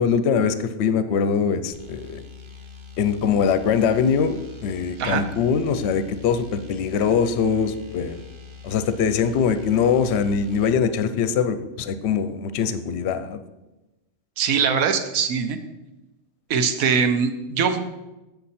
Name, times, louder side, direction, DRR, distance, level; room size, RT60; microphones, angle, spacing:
voice 1, 0.0-2.2 3.0-8.2 8.6-13.4, left 6 dB, 60° left, 11 dB, 0.8 m, -22 dB
sound 1, 1.7-10.8, left 5 dB, 45° right, 0.3 m, -43 dB
voice 2, 14.4-15.6 16.5-17.8, right 6 dB, 75° right, 8 dB, 1.2 m, -22 dB
8.0 x 6.7 x 4.2 m, 1.0 s
omnidirectional pair, 1.5 m